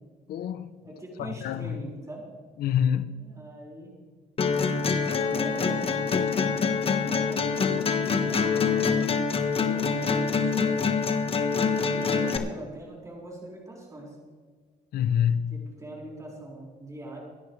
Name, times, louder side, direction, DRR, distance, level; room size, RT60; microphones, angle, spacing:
voice 1, 0.3-0.7 1.2-1.7 2.6-3.2 14.9-15.7, left 9 dB, 65° left, 0.8 m, -26 dB
voice 2, 0.8-2.3 3.2-3.9 4.4-10.8 11.7-14.2 15.5-17.2, right 1 dB, 20° right, 5.3 m, -43 dB
sound 1, 4.4-12.4, left 5 dB, 35° left, 1.3 m, -25 dB
25.5 x 10.5 x 3.3 m
cardioid pair, 110°, 17 cm